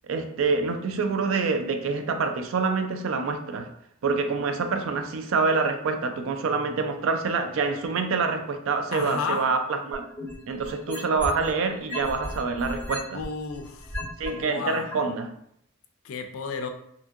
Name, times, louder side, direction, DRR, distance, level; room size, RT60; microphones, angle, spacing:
voice 1, 0.1-3.7 4.0-10.0 10.5-13.2 14.2-15.3, right 4 dB, 70° right, 0.4 m, -26 dB
voice 2, 8.9-9.5 13.1-14.0 14.3-14.9 16.0-16.7, left 5 dB, 75° left, 0.4 m, -32 dB
sound 1, 9.9-11.5 11.9-14.3 14.9-15.0, left 1 dB, 10° left, 1.4 m, -35 dB
2.7 x 2.6 x 2.4 m
head